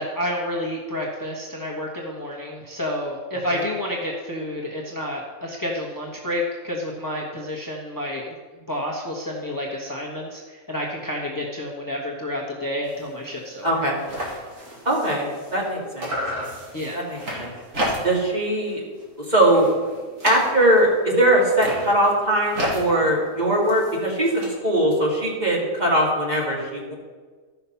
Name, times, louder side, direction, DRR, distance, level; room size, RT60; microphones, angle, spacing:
voice 1, 0.0-8.3 8.7-13.6 16.7-17.0, left 1 dB, 15° left, -2 dB, 1.2 m, -29 dB
sound 1, 12.8-13.1 13.4-13.5 13.7-15.7 16.0-18.3 18.7-19.0 19.4-20.9 21.4-24.5, equal, 90° right, 2.7 m, -32 dB
voice 2, 13.6-14.0 14.8-16.1 16.9-17.5 18.0-18.8 19.2-19.7 20.2-26.9, right 1 dB, 35° right, -4 dB, 2.6 m, -21 dB
13.5 x 5.8 x 5.7 m, 1.4 s
omnidirectional pair, 1.3 m